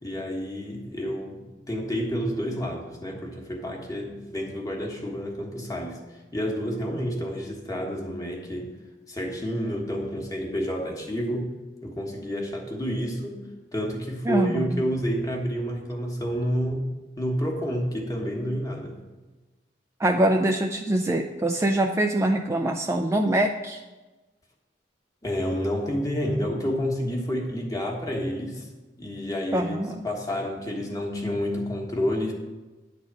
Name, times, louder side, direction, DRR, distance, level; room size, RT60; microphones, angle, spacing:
voice 1, 0.0-6.0 6.3-8.7 9.1-11.5 11.8-13.4 13.7-16.8 17.2-19.0 25.2-28.7 29.0-32.3, equal, 20° left, 0 dB, 1.4 m, -29 dB
voice 2, 14.3-14.8 20.0-23.8 29.5-30.0, right 1 dB, 15° right, 4 dB, 0.4 m, -24 dB
10.0 x 4.0 x 7.3 m, 1.2 s
head